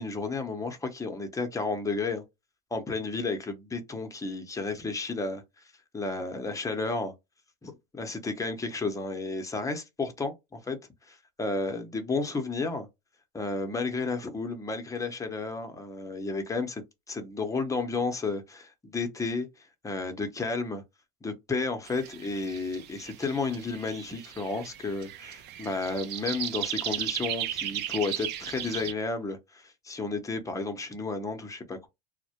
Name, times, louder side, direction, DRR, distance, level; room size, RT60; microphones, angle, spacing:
voice 1, 0.0-2.2 2.7-5.4 5.9-7.1 7.6-10.8 11.1-12.9 13.3-19.5 19.8-20.8 21.2-31.9, left 3 dB, 15° left, 0.7 m, -32 dB
sound 1, 21.9-28.9, right 11 dB, 55° right, 0.5 m, -36 dB
2.1 x 2.1 x 2.8 m
supercardioid pair, 90°, 21 cm